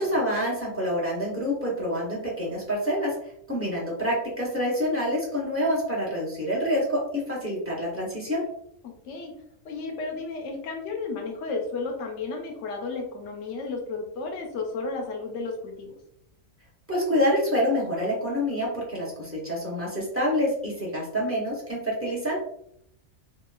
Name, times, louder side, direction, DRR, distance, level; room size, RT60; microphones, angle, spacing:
voice 1, 0.0-3.1 3.5-8.4 16.9-22.4, equal, 15° right, -5 dB, 0.6 m, -27 dB
voice 2, 8.8-9.3 9.6-16.0, left 3 dB, 70° left, 1 dB, 0.9 m, -33 dB
2.9 x 2.2 x 2.2 m, 0.72 s
omnidirectional pair, 1.3 m